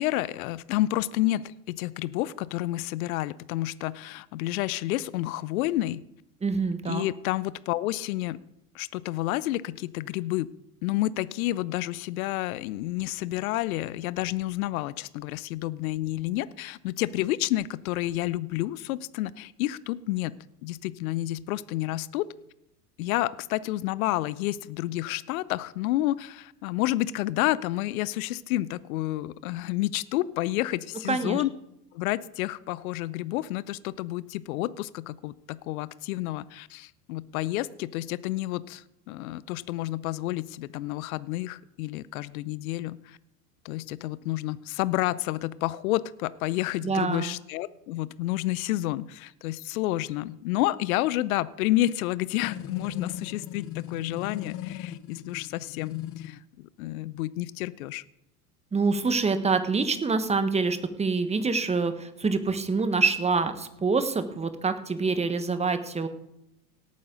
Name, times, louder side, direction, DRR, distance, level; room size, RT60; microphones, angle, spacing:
voice 1, 0.0-6.0 6.9-8.4 8.7-10.5 10.8-20.3 20.6-22.3 23.0-31.5 31.9-43.2 43.6-58.0, left 16 dB, 60° left, 18 dB, 0.7 m, -30 dB
voice 2, 6.4-7.0 31.1-31.4 46.8-47.3 58.7-66.1, right 4 dB, 15° right, 10 dB, 1.3 m, -26 dB
sound 1, 52.4-56.4, left 11 dB, 30° left, 0.7 m, -38 dB
17.5 x 9.5 x 3.9 m, 0.84 s
hypercardioid pair, 95°, 47 cm